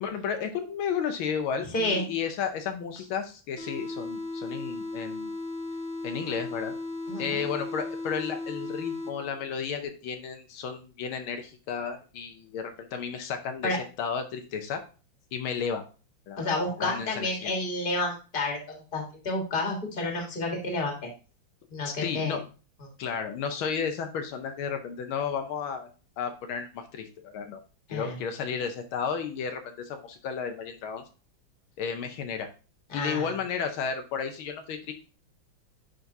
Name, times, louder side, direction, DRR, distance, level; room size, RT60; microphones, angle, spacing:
voice 1, 0.0-5.3 6.0-6.7 7.2-14.8 15.3-15.8 16.3-17.5 21.8-22.4 23.0-27.6 27.9-31.0 31.8-32.5 32.9-34.9, left 6 dB, 80° left, 6 dB, 1.6 m, -33 dB
voice 2, 1.7-2.1 7.1-7.5 13.6-13.8 16.4-18.6 18.9-21.1 21.7-22.4 22.8-22.9 27.9-28.2 32.9-33.3, left 2 dB, 25° left, 0 dB, 1.6 m, -30 dB
sound 1, 3.6-9.5, left 2 dB, 5° left, 1.1 m, -36 dB
10.5 x 3.9 x 2.7 m, 0.34 s
omnidirectional pair, 2.3 m